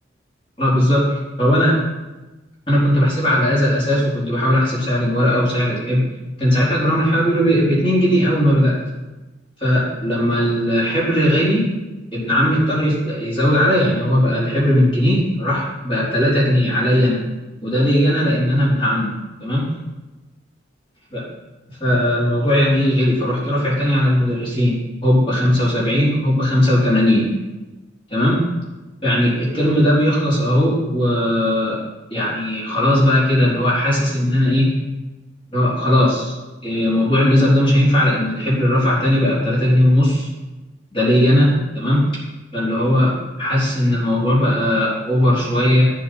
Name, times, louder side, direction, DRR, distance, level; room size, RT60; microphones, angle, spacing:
voice 1, 0.6-1.8 2.7-6.0 6.4-8.8 9.6-11.7 12.1-17.2 17.6-19.2 19.4-19.7 21.1-21.3 21.8-27.3 28.1-28.4 29.0-31.8 32.1-34.8 35.5-36.4 36.6-40.3 40.9-42.0 42.5-45.9, equal, 30° left, -7 dB, 3.8 m, -18 dB
13.5 x 7.6 x 4.6 m, 1.1 s
head